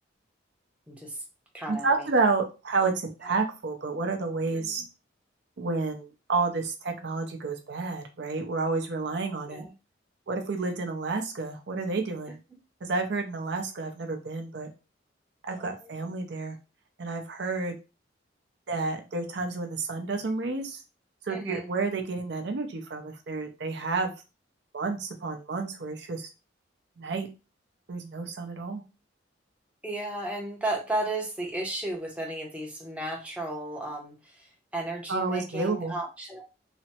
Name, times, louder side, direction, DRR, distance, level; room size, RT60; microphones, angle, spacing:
voice 1, 0.9-1.2 1.5-2.1 4.5-4.7 9.5-9.7 15.4-16.0 21.3-21.7 29.8-34.5 34.7-36.4, right 1 dB, 5° right, 0 dB, 0.6 m, -34 dB
voice 2, 1.7-4.8 5.6-9.6 10.3-12.4 12.8-14.7 15.4-16.6 17.0-17.7 18.7-20.8 21.3-24.1 24.7-26.3 27.0-27.3 27.9-28.8 35.1-35.9, right 3 dB, 65° right, 4 dB, 0.5 m, -30 dB
3.2 x 2.0 x 2.8 m, 0.29 s
head